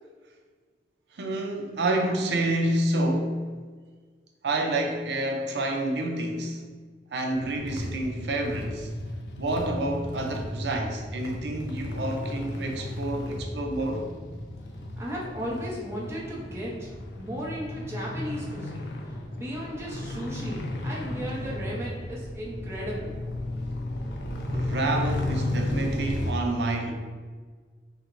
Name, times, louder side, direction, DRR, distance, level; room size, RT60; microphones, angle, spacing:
voice 1, 1.1-3.4 4.4-6.6 7.1-8.9 9.4-14.2 24.5-26.9, right 2 dB, 70° right, 3 dB, 0.5 m, -28 dB
sound 1, 7.3-26.3, left 1 dB, 70° left, 0.4 m, -34 dB
voice 2, 15.0-16.9 17.2-18.9 19.3-23.1, equal, 15° right, -5 dB, 0.8 m, -35 dB
5.7 x 2.1 x 2.6 m, 1.5 s
head